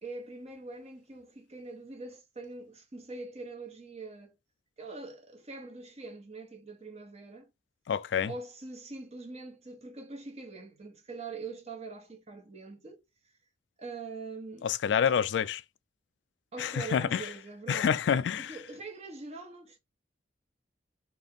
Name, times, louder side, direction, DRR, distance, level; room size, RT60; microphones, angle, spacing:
voice 1, 0.0-4.4 4.8-7.5 8.3-13.0 13.8-14.7 16.5-18.0 18.4-19.8, right 3 dB, 35° right, 1.1 m, -43 dB
voice 2, 7.9-8.3 14.6-15.6 16.6-17.3 17.7-18.6, left 7 dB, 85° left, 0.3 m, -27 dB
3.5 x 2.8 x 3.7 m
head